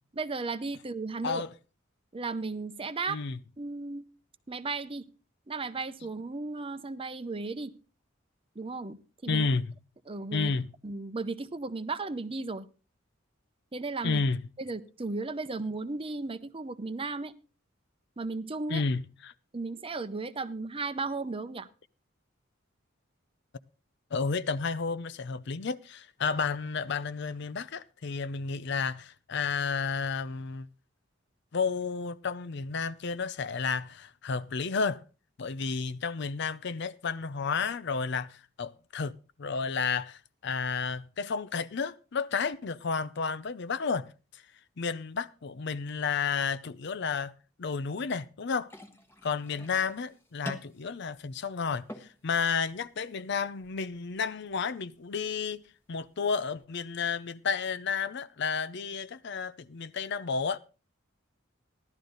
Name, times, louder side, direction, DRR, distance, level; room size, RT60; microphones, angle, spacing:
voice 1, 0.1-1.4 2.1-3.2 3.6-4.0 4.5-5.1 5.5-7.7 8.6-9.5 10.1-10.5 10.8-12.7 13.7-14.2 14.6-17.3 18.2-18.8 19.5-21.7, right 3 dB, 30° right, 0.7 m, -35 dB
voice 2, 3.1-3.4 9.3-9.7 10.3-10.7 14.0-14.4 18.7-19.3 24.1-30.7 31.5-35.0 35.4-44.4 44.8-47.3 47.6-48.7 49.2-55.6 55.9-60.6, left 5 dB, 60° left, 0.6 m, -32 dB
sound 1, 48.6-56.6, equal, 10° left, 1.2 m, -49 dB
15.5 x 12.0 x 3.9 m
head